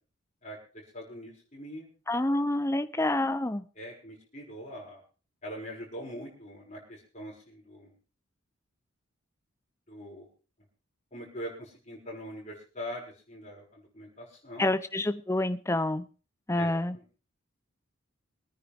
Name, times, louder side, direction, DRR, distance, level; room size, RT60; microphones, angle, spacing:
voice 1, 0.4-1.9 3.8-5.0 5.4-7.9 9.9-10.3 11.1-14.7 16.5-17.0, equal, 35° left, -2 dB, 5.9 m, -43 dB
voice 2, 2.1-3.6 14.6-16.0 16.5-17.0, left 1 dB, 15° left, 13 dB, 0.6 m, -28 dB
24.5 x 9.9 x 3.5 m, 0.35 s
head